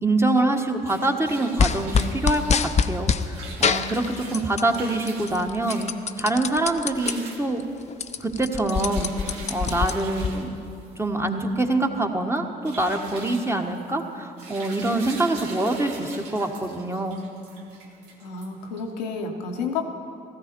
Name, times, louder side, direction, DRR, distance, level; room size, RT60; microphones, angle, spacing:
voice 1, 0.0-5.9 6.2-7.6 8.2-9.1 9.5-10.6 11.0-17.2, right 2 dB, 10° right, 4 dB, 1.5 m, -25 dB
sound 1, 0.6-19.1, right 3 dB, 80° right, 1.6 m, -42 dB
sound 2, 1.6-3.2 3.6-4.8 5.1-7.1 7.6-7.7 7.9-10.3, left 6 dB, 30° left, 0.6 m, -24 dB
voice 2, 18.2-19.9, left 5 dB, 85° left, 2 dB, 1.0 m, -30 dB
16.5 x 14.0 x 4.6 m, 2.5 s
hypercardioid pair, 50°, 21 cm